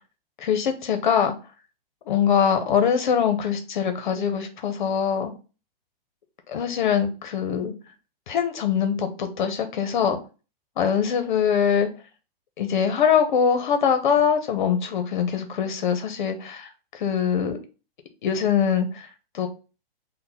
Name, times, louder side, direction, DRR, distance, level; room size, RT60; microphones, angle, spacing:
voice 1, 0.4-1.3 2.1-5.3 6.5-7.7 8.3-10.2 10.8-11.9 12.6-17.6 18.2-19.1 19.3-19.5, left 7 dB, 55° left, 7 dB, 0.6 m, -23 dB
3.8 x 2.1 x 4.0 m, 0.33 s
hypercardioid pair, 170°, 29 cm